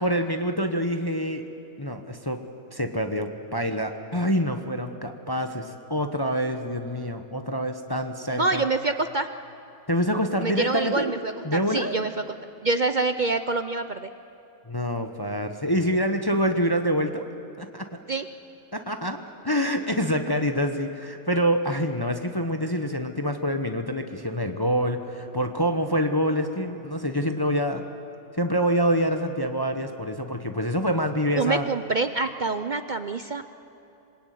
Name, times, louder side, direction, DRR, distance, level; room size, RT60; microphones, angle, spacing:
voice 1, 0.0-1.4 1.8-2.4 2.7-8.6 9.9-11.1 11.4-12.0 14.7-17.3 17.6-17.9 18.7-19.2 19.4-27.8 28.4-31.6, equal, 15° left, 6 dB, 0.9 m, -26 dB
voice 2, 8.3-9.3 10.4-12.1 12.6-14.1 18.1-18.3 31.4-33.4, right 3 dB, 50° right, 9 dB, 0.5 m, -26 dB
26.0 x 21.0 x 9.3 m, 2.8 s
omnidirectional pair, 1.7 m